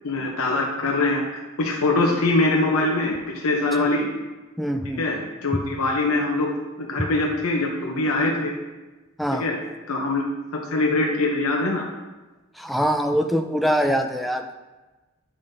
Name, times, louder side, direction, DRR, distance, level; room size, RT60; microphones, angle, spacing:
voice 1, 0.0-4.1 5.0-6.5 6.8-8.5 9.3-9.6 9.9-11.8, left 2 dB, 80° left, 0 dB, 0.8 m, -23 dB
voice 2, 4.6-5.0 9.2-9.5 12.6-14.6, equal, ahead, 5 dB, 0.3 m, -23 dB
8.6 x 5.4 x 2.7 m, 1.2 s
head